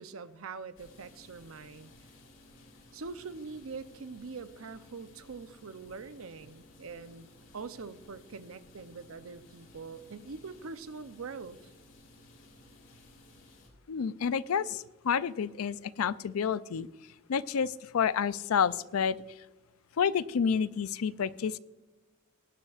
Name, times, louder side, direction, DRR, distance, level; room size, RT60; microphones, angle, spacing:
voice 1, 0.0-1.9 2.9-7.3 7.5-11.6, right 4 dB, 80° right, 12 dB, 0.7 m, -43 dB
sound 1, 0.8-13.7, left 1 dB, 60° left, 3.0 m, -57 dB
voice 2, 13.9-16.9 17.3-19.2 20.0-21.6, left 7 dB, 90° left, 17 dB, 0.4 m, -29 dB
19.0 x 9.8 x 2.4 m, 1.2 s
head